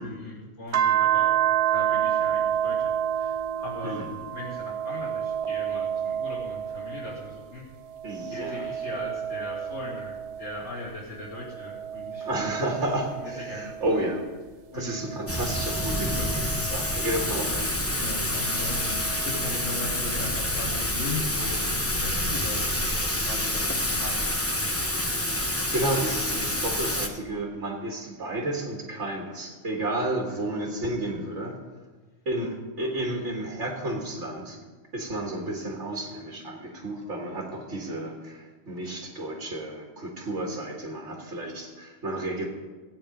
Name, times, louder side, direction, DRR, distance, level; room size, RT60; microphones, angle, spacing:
voice 1, 0.0-1.3 1.6-4.0 4.3-7.6 8.3-12.5 13.4-13.7 14.7-15.0 18.0-22.9 23.2-24.4 30.0-30.1, left 2 dB, 80° left, -7 dB, 2.8 m, -38 dB
sound 1, 0.7-7.4 7.9-10.8 11.4-14.2 14.9-17.4 18.7-19.8, right 9 dB, 65° right, 0.3 m, -30 dB
voice 2, 3.8-4.2 8.0-8.7 12.2-14.2 14.7-17.7 23.1-23.2 25.2-31.6 32.3-34.6 34.9-42.5, right 1 dB, 90° right, -1 dB, 2.0 m, -32 dB
Thunder / Rain, 15.3-27.1, left 1 dB, 15° left, 1.0 m, -28 dB
15.5 x 8.9 x 5.2 m, 1.3 s
omnidirectional pair, 1.2 m